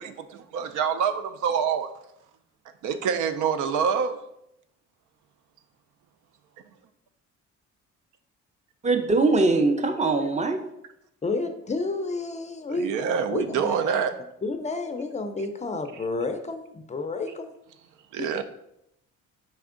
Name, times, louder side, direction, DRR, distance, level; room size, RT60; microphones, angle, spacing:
voice 1, 0.0-1.9 2.8-4.2 12.7-14.2 18.1-18.4, right 7 dB, 85° right, 10 dB, 0.5 m, -26 dB
voice 2, 8.8-10.6, right 3 dB, 25° right, 7 dB, 0.6 m, -22 dB
voice 3, 11.2-12.9 13.3-14.1 14.4-17.5 18.2-18.3, left 3 dB, 25° left, 7 dB, 0.4 m, -30 dB
4.2 x 3.4 x 3.7 m, 0.79 s
cardioid pair, 90°, 30 cm